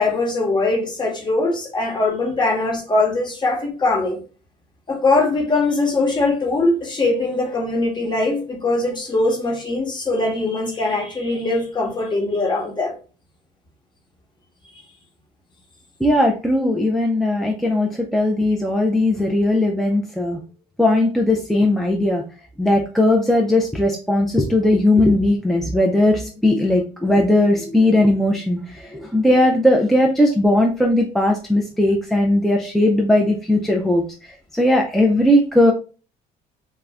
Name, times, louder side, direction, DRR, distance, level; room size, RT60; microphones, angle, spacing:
voice 1, 0.0-4.2 4.9-12.9, left 2 dB, 25° left, 0 dB, 0.9 m, -21 dB
voice 2, 16.0-20.4 20.8-22.2 22.6-35.7, left 1 dB, ahead, 1 dB, 0.3 m, -18 dB
2.3 x 2.1 x 3.4 m, 0.36 s
cardioid pair, 110°, 17 cm